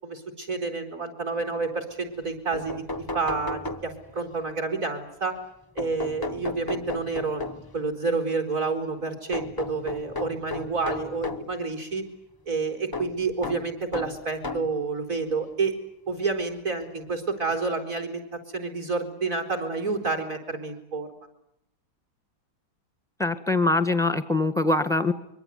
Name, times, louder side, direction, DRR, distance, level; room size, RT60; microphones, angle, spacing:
voice 1, 0.0-2.8 3.1-5.4 5.7-12.1 12.5-15.8 16.1-21.1, right 4 dB, 40° right, 3 dB, 4.9 m, -29 dB
sound 1, 2.2-2.3 2.5-4.3 5.8-7.8 9.3-11.5 12.9-14.8 15.7-15.8 17.1-17.2 17.5-17.6, left 3 dB, 30° left, 0.4 m, -34 dB
voice 2, 23.2-25.1, left 2 dB, ahead, 12 dB, 1.5 m, -23 dB
24.5 x 23.0 x 9.4 m, 0.77 s
omnidirectional pair, 2.2 m